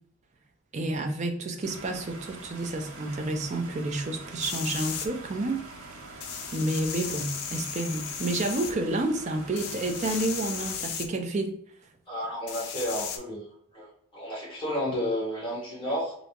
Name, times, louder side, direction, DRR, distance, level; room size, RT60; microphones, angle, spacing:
voice 1, 0.7-5.6 6.5-11.6, right 2 dB, 30° right, 4 dB, 0.4 m, -30 dB
sound 1, 1.6-10.8, right 3 dB, 70° right, 0.8 m, -45 dB
sound 2, 4.4-5.1 6.2-8.7 9.6-11.1 12.5-13.2, left 8 dB, 80° left, 0.5 m, -35 dB
voice 2, 12.1-13.5 13.7-16.1, equal, 20° left, -7 dB, 1.5 m, -32 dB
3.3 x 2.7 x 2.8 m, 0.66 s
head